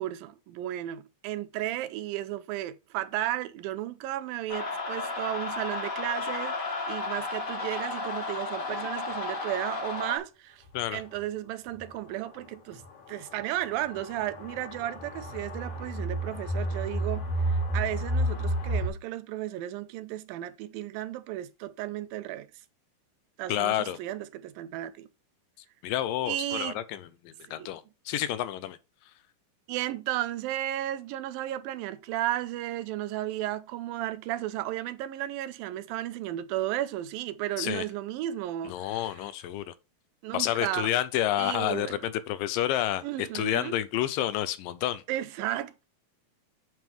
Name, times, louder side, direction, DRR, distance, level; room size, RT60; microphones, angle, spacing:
voice 1, 0.0-10.6 10.9-12.8 13.1-22.5 23.4-25.1 26.3-26.8 27.6-27.7 29.7-39.2 40.2-40.9 41.4-42.0 43.0-43.8 45.1-45.8, right 14 dB, 85° right, 2.4 m, -34 dB
sound 1, 4.5-10.2, left 3 dB, 35° left, 1.4 m, -33 dB
sound 2, 10.7-10.8 11.1-11.2 11.7-11.8 12.7-18.9, right 1 dB, 65° left, 3.9 m, -31 dB
voice 2, 23.5-24.0 25.8-28.8 37.6-37.9 38.6-39.7 40.3-45.0, left 12 dB, 80° left, 2.2 m, -29 dB
9.2 x 3.7 x 4.4 m
omnidirectional pair, 4.1 m